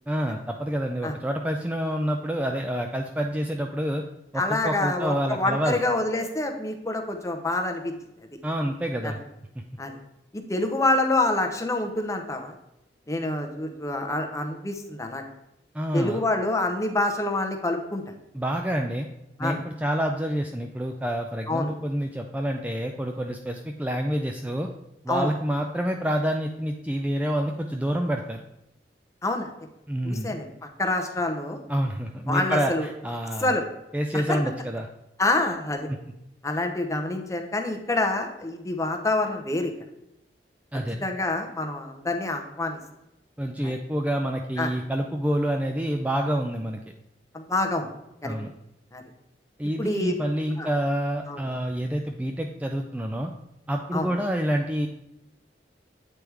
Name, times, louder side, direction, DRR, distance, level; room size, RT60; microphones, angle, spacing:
voice 1, 0.1-4.0 4.3-5.8 8.4-9.2 15.7-16.2 18.3-19.1 19.4-24.7 25.0-28.4 29.9-30.3 31.7-33.6 33.9-34.9 40.7-41.1 43.4-46.8 48.2-48.5 49.6-53.3 53.7-54.9, equal, 10° right, 3 dB, 0.3 m, -28 dB
voice 2, 4.4-7.9 9.0-9.1 9.8-10.0 10.3-12.5 13.1-15.2 15.9-18.0 19.4-19.6 21.5-21.7 25.1-25.3 29.2-29.5 30.0-30.5 30.8-31.6 32.3-32.9 33.4-33.6 34.1-34.4 35.2-35.9 36.4-39.7 41.0-42.8 43.6-43.7 44.6-44.7 47.3-47.9 48.2-48.3 48.9-49.0 49.8-50.2 50.6-50.7 51.3-51.4 53.9-54.1, left 2 dB, 15° left, 4 dB, 0.7 m, -27 dB
8.6 x 3.4 x 4.6 m, 0.87 s
head